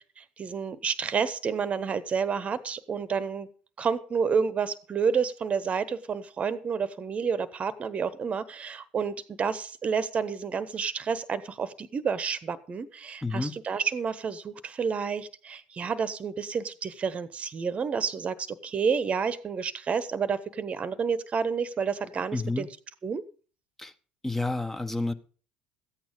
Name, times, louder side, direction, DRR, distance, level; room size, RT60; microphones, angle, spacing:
voice 1, 0.4-3.5 3.8-22.7 23.0-23.2, right 6 dB, 30° right, 1.2 m, -30 dB
voice 2, 13.2-13.5 22.3-22.7 23.8-23.9 24.2-25.1, left 2 dB, 10° left, 1.3 m, -29 dB
14.5 x 8.9 x 5.3 m
figure-of-eight pair, 65°, 4 cm